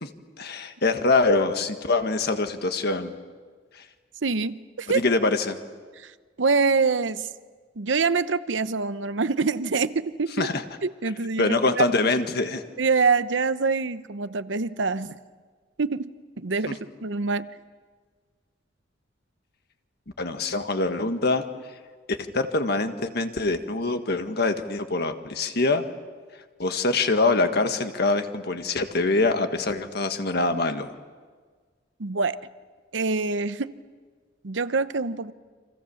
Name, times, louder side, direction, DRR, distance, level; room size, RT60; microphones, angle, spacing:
voice 1, 0.4-3.1 4.9-5.6 10.4-10.6 11.4-12.6 20.2-21.4 22.1-25.8 26.6-30.9, left 3 dB, 60° left, 7 dB, 1.6 m, -24 dB
voice 2, 4.2-5.0 6.0-6.1 6.4-7.3 7.8-10.5 10.8-11.8 12.8-15.2 15.8-17.5 32.0-32.4 32.9-33.8 34.4-35.3, right 4 dB, 70° right, 13 dB, 0.8 m, -25 dB
29.5 x 26.0 x 7.1 m, 1.5 s
head